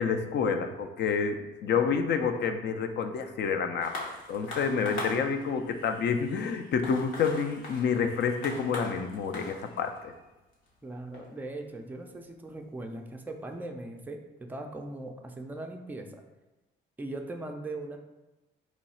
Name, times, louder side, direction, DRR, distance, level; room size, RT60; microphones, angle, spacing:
voice 1, 0.0-10.1, left 6 dB, 60° left, 7 dB, 0.4 m, -29 dB
sound 1, 3.8-12.7 13.4-13.5, left 2 dB, 90° left, 1.0 m, -42 dB
voice 2, 10.8-16.2 17.0-18.0, right 2 dB, 10° right, 3 dB, 0.4 m, -39 dB
3.0 x 2.3 x 4.1 m, 1.0 s
cardioid pair, 90°, 20 cm